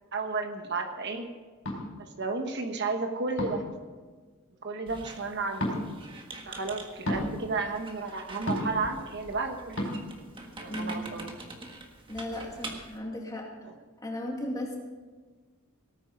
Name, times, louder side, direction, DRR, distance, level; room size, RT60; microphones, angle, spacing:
voice 1, 0.1-1.2 2.0-3.7 4.6-5.7 6.5-9.9 10.6-11.3 13.6-13.7, right 3 dB, 50° right, 5 dB, 1.1 m, -32 dB
sound 1, 1.6-1.8 3.4-3.7 5.6-5.8 7.0-7.2 8.5-8.8 9.8-9.9, left 1 dB, 60° left, 4.5 m, -30 dB
Squeak, 4.9-13.0, right 2 dB, 25° right, 1.5 m, -45 dB
voice 2, 10.7-11.0 12.1-13.5 14.0-14.8, left 1 dB, 15° left, -1 dB, 2.4 m, -35 dB
18.0 x 9.1 x 5.5 m, 1.4 s
head